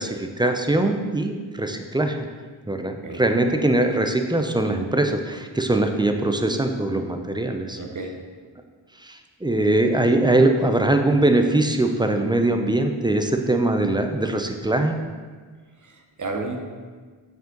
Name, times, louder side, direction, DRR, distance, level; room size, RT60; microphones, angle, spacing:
voice 1, 0.0-2.2 2.7-7.8 9.0-15.0, right 2 dB, 10° right, 5 dB, 0.5 m, -22 dB
voice 2, 7.8-8.2 15.8-16.6, right 3 dB, 40° right, 3 dB, 0.9 m, -32 dB
7.5 x 5.2 x 3.9 m, 1.5 s
wide cardioid pair, 100°, 47 cm